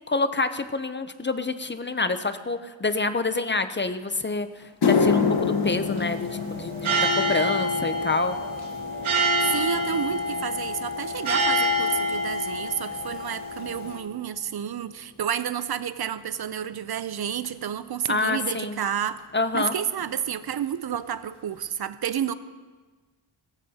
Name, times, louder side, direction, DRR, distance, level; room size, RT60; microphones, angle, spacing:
voice 1, 0.1-4.5 4.8-8.4 18.1-18.8 19.3-19.7, left 3 dB, 25° left, 10 dB, 0.5 m, -27 dB
sound 1, 4.1-4.2 4.6-13.1 13.4-13.8 14.6-14.7 17.4-17.5 19.2-19.3 19.5-19.7 20.0-20.5 20.9-21.0 21.6-21.7, left 5 dB, 55° left, 1.1 m, -29 dB
sound 2, 4.9-14.0, equal, 85° right, 2.1 m, -27 dB
voice 2, 9.5-19.2 19.5-22.3, right 9 dB, 55° right, 14 dB, 0.5 m, -30 dB
17.5 x 15.5 x 2.8 m, 1.4 s
wide cardioid pair, 125°, 47 cm